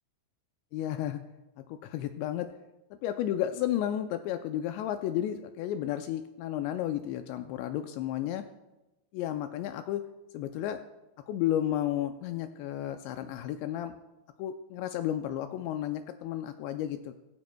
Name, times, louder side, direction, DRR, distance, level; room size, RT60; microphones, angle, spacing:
voice 1, 0.7-1.2 1.6-2.5 3.0-8.4 9.1-10.0 10.3-10.8 11.3-13.9 14.4-17.1, left 11 dB, 85° left, 8 dB, 2.5 m, -32 dB
21.5 x 14.5 x 2.2 m, 1.0 s
omnidirectional pair, 5.5 m